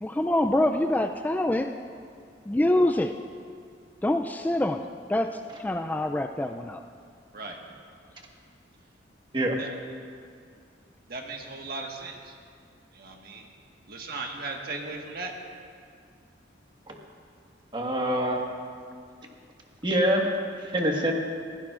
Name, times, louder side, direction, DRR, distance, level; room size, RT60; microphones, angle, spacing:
voice 1, 0.0-1.7 2.5-3.1 4.0-6.8, left 1 dB, 10° left, 5 dB, 0.3 m, -25 dB
voice 2, 11.1-12.2 13.0-13.4 13.9-15.3, right 3 dB, 55° right, 1 dB, 1.5 m, -36 dB
voice 3, 17.7-18.4 19.8-20.3 20.7-21.1, equal, 25° right, 0 dB, 1.5 m, -25 dB
22.0 x 16.0 x 2.5 m, 2.2 s
head